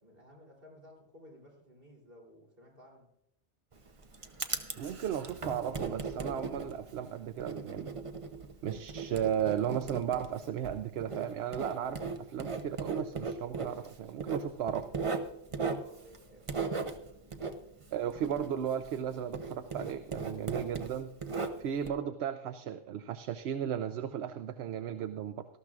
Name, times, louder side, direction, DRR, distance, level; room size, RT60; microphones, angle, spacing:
voice 1, 0.0-3.1 15.6-16.8 21.4-22.6, left 1 dB, 55° right, 3.5 m, -56 dB
Writing, 3.7-19.1 19.3-21.9, right 4 dB, 35° right, 0.8 m, -38 dB
voice 2, 4.8-7.9 8.6-14.9 17.9-21.1 21.6-25.4, right 9 dB, 70° right, 0.8 m, -35 dB
19.0 x 13.0 x 2.4 m
omnidirectional pair, 1.2 m